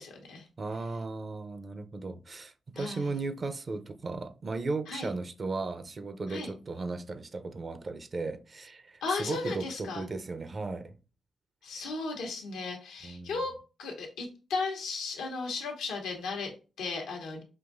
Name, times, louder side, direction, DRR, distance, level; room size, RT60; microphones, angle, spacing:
voice 1, 0.0-0.5 2.7-3.2 4.9-5.1 6.3-6.5 9.0-10.0 11.6-13.5 13.8-17.4, left 3 dB, 85° left, 1.0 m, -35 dB
voice 2, 0.6-10.9 11.7-11.9 13.0-13.4, right 3 dB, 50° right, 0.6 m, -36 dB
5.7 x 2.6 x 2.6 m
supercardioid pair, 45°, 0 cm